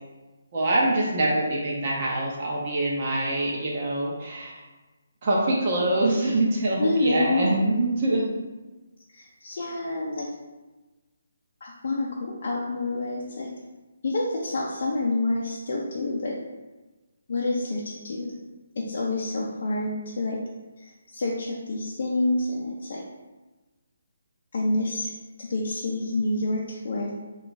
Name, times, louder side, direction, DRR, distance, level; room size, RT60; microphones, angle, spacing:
voice 1, 0.5-4.6 5.2-8.2, right 1 dB, 40° right, -4 dB, 0.6 m, -24 dB
voice 2, 6.8-7.5 9.1-10.3 11.6-13.5 14.0-16.3 17.3-18.3 18.8-20.4 20.8-23.0 24.5-25.1 25.4-27.1, left 2 dB, 50° left, -5 dB, 0.5 m, -28 dB
3.5 x 2.4 x 3.9 m, 1.2 s
hypercardioid pair, 165°, 0 cm